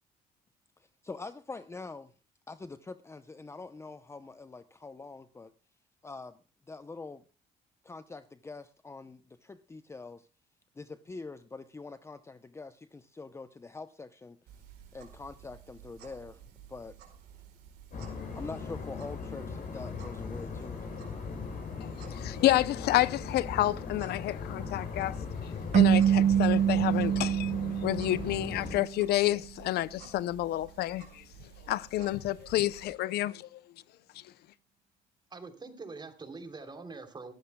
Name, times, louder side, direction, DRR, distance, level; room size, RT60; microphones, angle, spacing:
voice 1, 0.8-2.1 2.5-5.5 6.0-6.4 6.7-7.2 7.8-10.3 10.8-14.4 14.9-16.4 16.7-17.0 18.3-20.9, left 3 dB, 15° left, 0.7 m, -44 dB
sound 1, 14.5-32.9, right 9 dB, 80° right, 4.8 m, -54 dB
sound 2, 17.9-28.8, left 5 dB, 55° left, 6.8 m, -39 dB
voice 2, 22.1-25.2 25.7-27.5 27.8-31.2 31.7-33.6, left 15 dB, 70° left, 0.6 m, -29 dB
sound 3, 25.7-28.9, right 9 dB, 45° right, 0.5 m, -25 dB
voice 3, 35.3-37.3, right 3 dB, 25° right, 3.1 m, -44 dB
23.5 x 13.0 x 2.2 m
cardioid pair, 110°, 17 cm